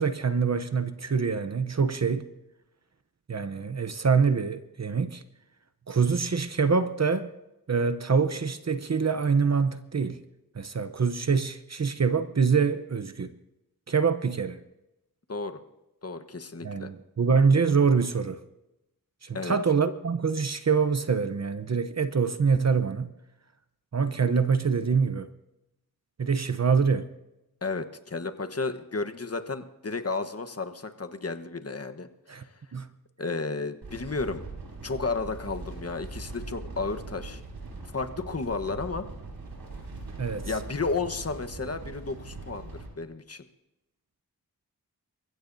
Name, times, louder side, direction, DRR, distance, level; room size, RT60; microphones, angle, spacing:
voice 1, 0.0-2.3 3.3-5.2 5.9-7.3 7.7-10.2 10.6-13.3 13.9-14.6 16.6-18.4 19.2-23.1 23.9-25.3 26.2-27.1 32.3-32.4 32.7-32.9 40.2-40.5, right 5 dB, 45° right, 0.8 m, -25 dB
voice 2, 15.3-15.6 16.0-16.9 19.3-19.6 27.6-32.1 33.2-34.4 34.8-37.4 37.9-39.1 40.4-43.4, left 3 dB, 40° left, 1.2 m, -32 dB
sound 1, 33.8-42.9, right 3 dB, 85° right, 4.2 m, -41 dB
29.0 x 15.5 x 2.7 m
cardioid pair, 50°, 36 cm